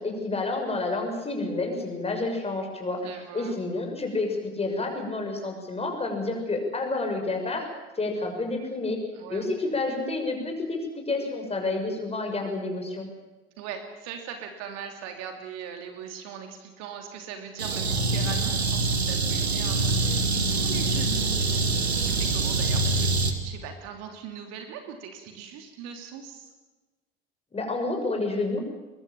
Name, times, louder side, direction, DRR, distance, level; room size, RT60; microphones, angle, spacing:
voice 1, 0.0-3.1 3.3-7.7 8.0-9.0 9.3-13.1 27.5-28.6, left 3 dB, 20° left, 3 dB, 6.4 m, -29 dB
voice 2, 2.9-3.6 9.1-9.7 13.6-26.5, right 7 dB, 55° right, 5 dB, 3.0 m, -40 dB
sound 1, 17.6-23.3, right 3 dB, 85° right, 1.8 m, -25 dB
23.0 x 21.5 x 7.3 m, 1.2 s
figure-of-eight pair, 65°, 31 cm